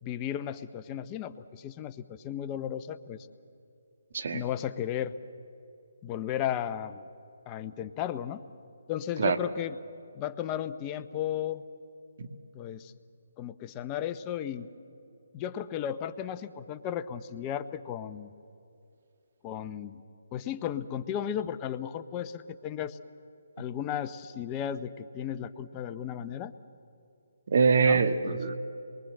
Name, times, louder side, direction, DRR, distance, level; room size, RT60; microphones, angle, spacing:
voice 1, 0.0-3.2 4.3-5.1 6.0-7.0 7.5-8.4 8.9-9.8 10.1-11.6 12.5-12.9 13.4-14.7 15.3-18.3 19.4-20.0 20.3-23.0 23.6-26.5 27.8-28.4, left 10 dB, 25° left, 11 dB, 0.8 m, -34 dB
voice 2, 27.5-28.5, right 5 dB, 55° right, 9 dB, 1.6 m, -24 dB
27.0 x 22.0 x 7.8 m, 2.6 s
figure-of-eight pair, 150°, 0 cm